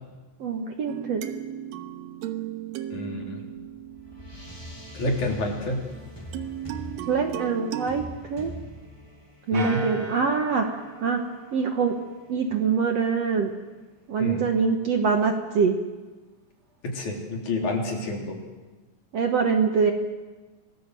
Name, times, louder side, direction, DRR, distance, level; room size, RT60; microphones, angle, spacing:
voice 1, 0.4-1.3 7.1-8.0 8.3-8.5 9.5-10.7 11.0-11.2 11.5-11.9 12.3-13.5 14.1-15.8 19.1-19.9, right 5 dB, 55° right, 4 dB, 2.0 m, -24 dB
sound 1, 0.9-5.2 6.3-8.1, right 11 dB, 90° right, 3.0 m, -36 dB
voice 2, 2.9-3.4 4.9-5.9 9.5-9.8 14.2-14.5 16.8-18.4, left 2 dB, 55° left, 0 dB, 4.8 m, -28 dB
sound 2, 3.4-13.8, left 1 dB, 5° left, 3.8 m, -45 dB
sound 3, 9.5-12.2, right 5 dB, 40° right, 1.6 m, -37 dB
27.0 x 19.5 x 7.8 m, 1.2 s
omnidirectional pair, 4.1 m